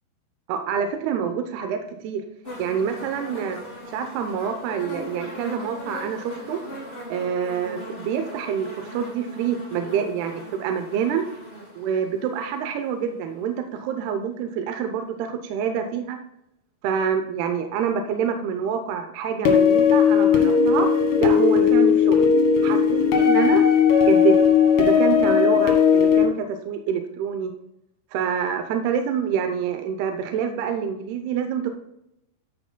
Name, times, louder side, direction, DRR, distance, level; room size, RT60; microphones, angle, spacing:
voice 1, 0.5-2.2 2.6-3.6 3.9-6.6 7.1-11.2 11.8-16.2 16.8-20.9 21.2-22.3 22.6-23.6 24.0-24.3 24.8-27.5 28.1-31.7, right 7 dB, 85° right, 6 dB, 2.8 m, -26 dB
sound 1, 2.4-13.5 14.5-14.6, equal, 15° left, 4.0 m, -40 dB
sound 2, 19.5-26.2, left 7 dB, 85° left, 3.4 m, -17 dB
13.5 x 9.6 x 2.2 m, 0.82 s
omnidirectional pair, 4.4 m